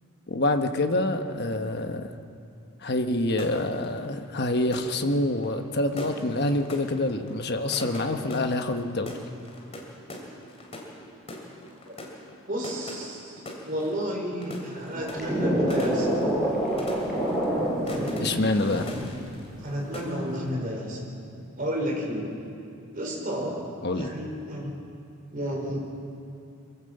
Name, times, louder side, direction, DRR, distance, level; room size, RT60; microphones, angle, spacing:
voice 1, 0.3-2.1 2.8-9.1 18.2-18.9 23.8-24.1, left 2 dB, 45° left, 6 dB, 1.1 m, -26 dB
sound 1, 3.3-19.7 19.9-20.5, left 1 dB, 30° left, 2.7 m, -42 dB
voice 2, 12.5-16.1 17.8-18.2 18.6-19.1 19.6-21.1 21.6-22.4 22.9-23.7 23.9-24.8 25.3-25.9, equal, 40° right, -1 dB, 4.2 m, -31 dB
sound 2, 14.9-19.1 19.6-19.9, right 1 dB, ahead, 6.1 m, -27 dB
23.5 x 15.0 x 7.8 m, 2.6 s
head